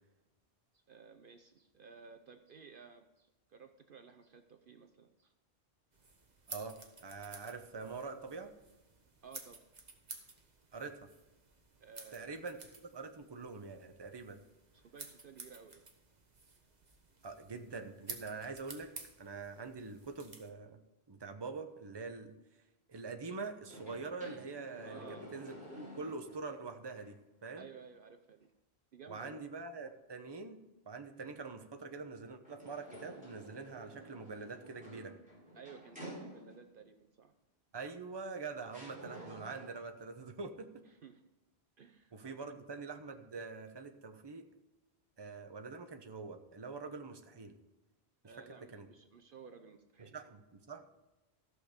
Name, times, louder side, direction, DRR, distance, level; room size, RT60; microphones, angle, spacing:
voice 1, 0.7-5.3 9.2-9.6 11.8-12.3 14.7-15.8 24.8-25.3 27.6-28.5 28.9-29.4 35.5-37.3 40.9-41.2 41.8-42.5 48.2-50.2, right 6 dB, 55° right, 7 dB, 0.8 m, -55 dB
sound 1, 5.9-20.5, right 3 dB, 40° right, 1.4 m, -53 dB
voice 2, 6.5-8.5 10.7-11.1 12.1-14.4 17.2-18.9 19.2-20.8 21.1-22.3 22.9-27.2 27.4-27.7 29.1-35.2 37.7-40.8 42.1-44.5 45.2-47.6 48.5-48.9 50.0-51.1, right 4 dB, 25° right, 6 dB, 0.9 m, -45 dB
sound 2, 23.6-26.5 27.0-27.1 32.4-36.8 37.9-38.0 38.7-39.9, right 1 dB, 5° right, 4.6 m, -51 dB
14.5 x 6.4 x 5.1 m, 1.0 s
omnidirectional pair, 1.1 m